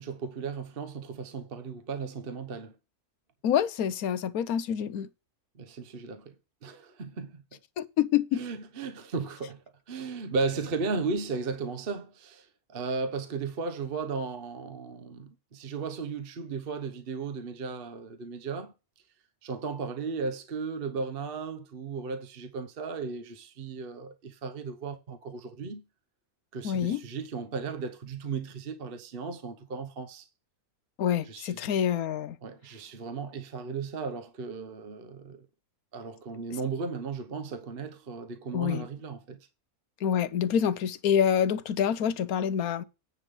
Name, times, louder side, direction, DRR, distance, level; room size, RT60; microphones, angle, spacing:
voice 1, 0.0-2.7 5.6-6.3 6.6-7.6 8.3-18.7 19.4-25.8 26.5-30.3 31.2-31.6 32.4-35.4 35.9-39.4, right 4 dB, 40° right, 1.2 m, -35 dB
voice 2, 3.4-5.1 7.8-8.4 26.6-27.0 31.0-32.4 38.5-38.9 40.0-42.8, left 9 dB, 80° left, 1.2 m, -27 dB
9.9 x 3.7 x 7.0 m
omnidirectional pair, 1.5 m